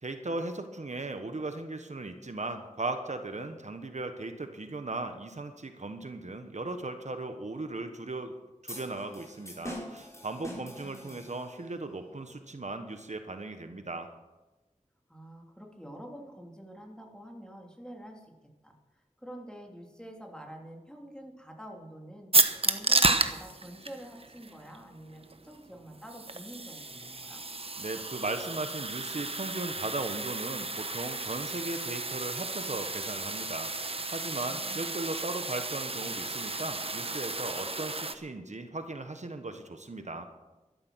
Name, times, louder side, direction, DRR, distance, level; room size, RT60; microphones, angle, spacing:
voice 1, 0.0-8.3 8.6-14.1 27.8-40.3, right 2 dB, 65° right, 7 dB, 1.3 m, -37 dB
sound 1, 8.7-11.7, equal, 20° left, 5.1 m, -44 dB
voice 2, 10.3-11.2 15.1-18.8 19.2-22.3 22.6-27.4 34.3-35.0, equal, 5° left, 1 dB, 3.0 m, -47 dB
sound 2, 22.3-38.1, right 3 dB, 45° right, 1.0 m, -32 dB
13.0 x 12.5 x 6.3 m, 1.1 s
wide cardioid pair, 55°, 13 cm